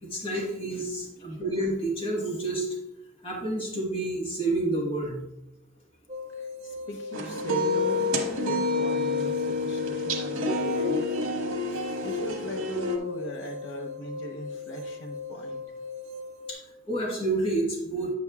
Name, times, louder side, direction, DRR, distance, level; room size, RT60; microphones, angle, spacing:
voice 1, 0.0-2.7 3.2-5.2 16.5-16.6 16.9-18.1, right 2 dB, 25° left, -2 dB, 1.4 m, -29 dB
sound 1, 6.1-16.5, left 3 dB, 35° right, 1.0 m, -39 dB
voice 2, 6.4-11.3 12.0-15.6, equal, 55° left, 3 dB, 0.8 m, -39 dB
sound 2, 7.1-13.0, left 2 dB, 70° right, 1.2 m, -28 dB
9.0 x 7.3 x 2.3 m, 0.91 s
head